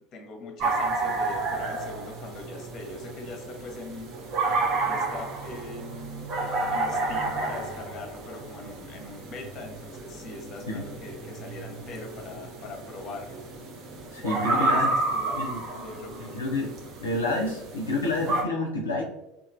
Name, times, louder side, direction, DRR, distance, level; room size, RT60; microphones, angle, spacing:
voice 1, 0.1-4.1 4.8-6.3 6.7-13.4 14.3-15.4 15.8-16.4, left 3 dB, 40° left, 2 dB, 0.7 m, -41 dB
sound 1, 0.6-18.4, right 3 dB, 45° right, 0.6 m, -31 dB
voice 2, 14.1-14.9 15.4-15.6 16.3-16.7 17.0-19.0, left 2 dB, 80° left, -1 dB, 0.4 m, -28 dB
3.0 x 2.3 x 2.5 m, 0.94 s
figure-of-eight pair, 70°, 0 cm